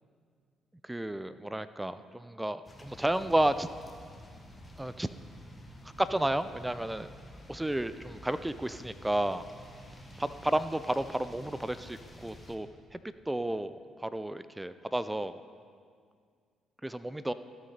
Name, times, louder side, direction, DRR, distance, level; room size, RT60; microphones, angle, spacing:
voice 1, 0.8-3.7 4.8-5.1 6.0-7.1 7.5-9.4 10.4-13.0 13.3-15.4 16.8-17.3, right 1 dB, 10° right, 13 dB, 0.3 m, -32 dB
sound 1, 2.6-12.6, equal, 20° left, 1.3 m, -50 dB
14.0 x 6.3 x 4.2 m, 2.1 s
figure-of-eight pair, 45°, 0 cm